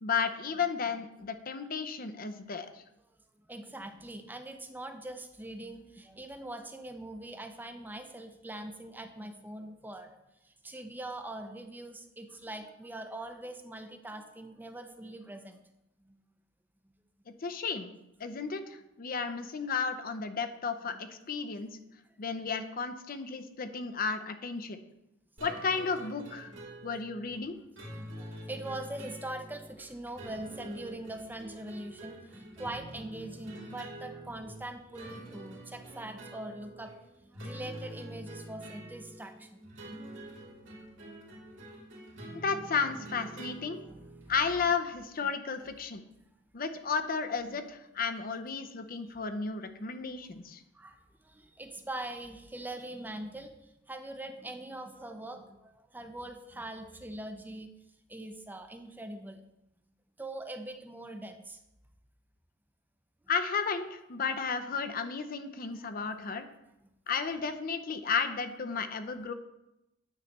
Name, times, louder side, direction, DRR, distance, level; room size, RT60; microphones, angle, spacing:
voice 1, 0.0-2.7 17.3-17.9 18.2-21.7 22.2-24.8 25.4-26.5 26.8-27.5 42.4-43.8 44.3-46.0 46.5-50.6 63.3-66.5 67.1-69.3, left 5 dB, 50° left, 9 dB, 0.6 m, -33 dB
voice 2, 3.5-15.7 16.0-16.2 20.8-21.0 21.6-21.7 26.5-26.6 27.0-27.1 27.6-36.9 37.2-39.7 40.8-40.9 42.2-42.3 43.2-43.3 43.9-44.0 47.5-47.6 50.7-57.7 58.1-59.4 60.2-61.6 65.8-65.9 66.8-66.9, right 1 dB, 10° right, 6 dB, 0.6 m, -43 dB
sound 1, 25.4-44.6, right 1 dB, 75° right, 2.4 m, -46 dB
9.6 x 3.2 x 6.5 m, 0.88 s
head